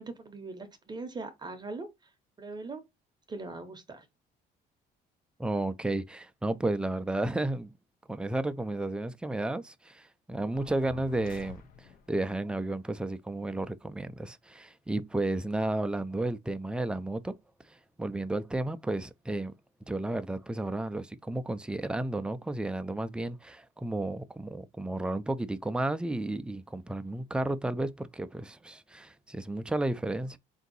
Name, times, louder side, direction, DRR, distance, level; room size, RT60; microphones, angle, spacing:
voice 1, 0.0-1.9 2.4-2.8 3.3-4.1, right 3 dB, 25° right, 0.7 m, -40 dB
voice 2, 5.4-7.8 8.1-17.4 17.7-19.5 19.9-30.4, right 2 dB, 5° right, 0.3 m, -32 dB
sound 1, 10.5-12.2, left 8 dB, 55° left, 0.6 m, -47 dB
3.8 x 2.7 x 3.9 m
cardioid pair, 110°, 17 cm